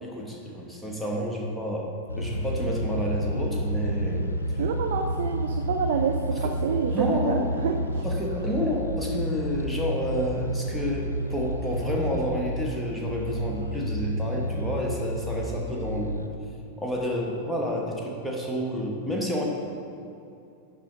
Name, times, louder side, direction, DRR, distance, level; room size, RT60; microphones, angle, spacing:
voice 1, 0.0-1.9 2.2-4.6 6.3-6.5 6.9-7.7 8.0-16.2 16.8-19.5, equal, ahead, -3 dB, 1.3 m, -30 dB
sound 1, 2.1-16.3, equal, 80° left, 0.6 m, -30 dB
voice 2, 4.6-8.0, right 7 dB, 55° right, 3 dB, 0.5 m, -28 dB
10.5 x 3.7 x 5.1 m, 2.7 s
figure-of-eight pair, 90°, 0 cm